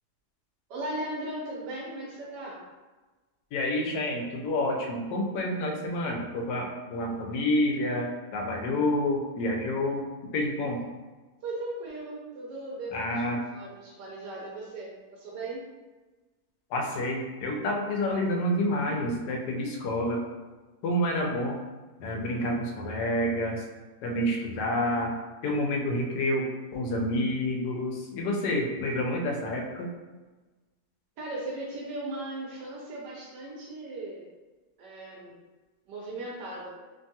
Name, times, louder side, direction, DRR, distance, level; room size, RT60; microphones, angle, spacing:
voice 1, 0.7-2.6 11.4-13.2 13.5-15.6 31.2-34.2 34.8-35.4 35.9-36.7, right 2 dB, 85° right, -4 dB, 1.2 m, -37 dB
voice 2, 3.5-10.0 10.3-10.8 12.9-13.4 16.7-20.2 20.8-21.6 22.0-23.6 24.0-25.1 25.4-29.9, left 1 dB, 80° left, 1 dB, 1.1 m, -28 dB
3.1 x 2.2 x 2.7 m, 1.2 s
omnidirectional pair, 1.7 m